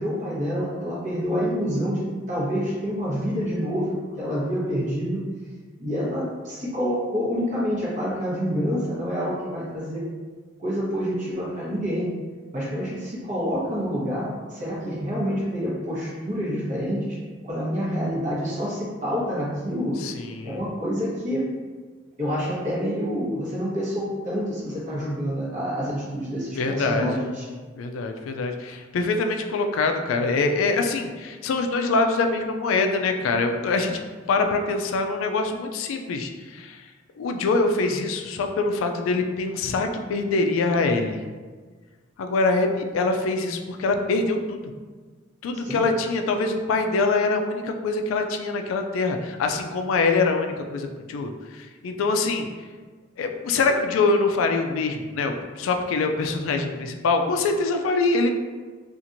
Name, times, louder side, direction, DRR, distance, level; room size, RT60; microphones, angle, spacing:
voice 1, 0.0-5.2 5.8-10.0 10.6-12.1 12.5-17.2 17.4-20.0 20.4-21.4 22.2-27.4 45.6-45.8, equal, 40° right, -7 dB, 1.0 m, -27 dB
voice 2, 20.0-20.6 26.6-27.2 27.8-34.0 34.3-36.9 37.2-41.2 42.2-44.7 45.4-52.5 53.2-58.3, left 3 dB, 90° left, 5 dB, 0.3 m, -24 dB
2.9 x 2.5 x 2.5 m, 1.4 s
head